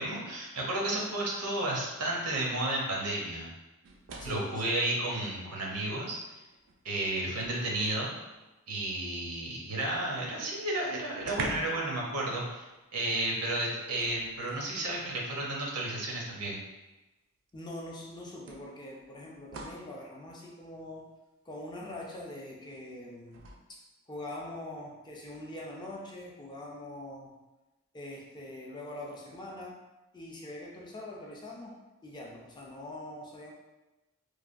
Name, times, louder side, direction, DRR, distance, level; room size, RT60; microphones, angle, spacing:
voice 1, 0.0-3.5 4.2-6.3 6.8-8.2 8.7-12.7 12.9-16.6, right 1 dB, 85° right, -2 dB, 0.7 m, -32 dB
sound 1, 3.8-4.6 5.9-6.0 6.5-8.1 10.2-10.3 10.5-10.6 11.2-11.9 12.2-12.4 14.0-14.7 15.8-15.9 17.5-17.6 18.5-19.9 23.3-23.6, right 3 dB, 55° right, 0.4 m, -42 dB
voice 2, 4.2-4.7 17.5-21.1 21.4-23.4 23.7-27.3 27.9-29.8 30.1-33.5, left 1 dB, 20° left, -2 dB, 0.4 m, -43 dB
3.2 x 2.2 x 2.5 m, 1.1 s
head